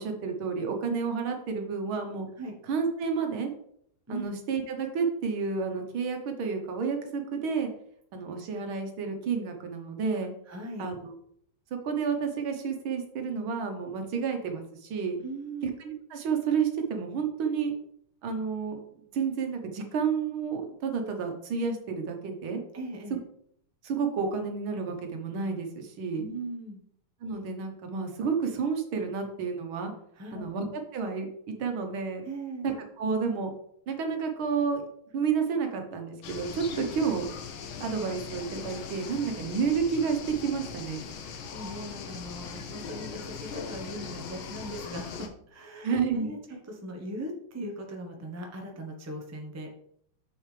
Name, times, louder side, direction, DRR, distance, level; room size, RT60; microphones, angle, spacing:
voice 1, 0.0-2.3 2.7-3.5 4.1-7.7 8.1-10.3 10.8-11.1 11.8-15.2 15.6-17.7 18.2-18.8 19.1-22.6 23.1-23.2 23.8-26.2 27.2-29.9 30.3-31.3 31.6-32.2 32.6-33.5 33.9-34.8 35.1-37.3 37.8-41.1 45.8-46.4, right 5 dB, 75° right, 4 dB, 1.9 m, -30 dB
voice 2, 10.5-10.9 15.2-15.6 22.7-23.2 26.2-26.8 30.2-30.5 32.2-32.7 36.7-37.0 41.2-46.4 46.6-49.7, right 1 dB, 20° right, 2 dB, 0.4 m, -39 dB
sound 1, 36.2-45.3, left 6 dB, 75° left, 1.7 m, -40 dB
7.0 x 6.6 x 3.3 m, 0.69 s
omnidirectional pair, 2.3 m